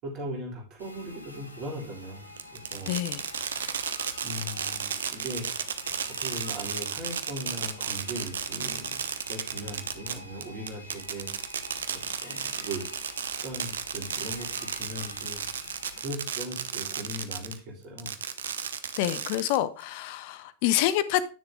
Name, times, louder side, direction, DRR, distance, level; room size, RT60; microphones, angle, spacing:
voice 1, 0.0-2.2 2.7-2.9 4.2-5.4 6.1-11.3 11.9-13.1 13.4-15.7 16.0-18.1, equal, 40° right, 3.6 m, -39 dB
sound 1, 0.8-16.0, left 1 dB, 85° left, 1.4 m, -46 dB
Fireworks, 2.4-17.6 18.0-19.8, right 7 dB, 65° right, 0.8 m, -33 dB
voice 2, 2.9-3.2 19.0-21.2, left 13 dB, 45° left, 0.7 m, -27 dB
9.6 x 6.7 x 3.7 m
figure-of-eight pair, 90°, 0 cm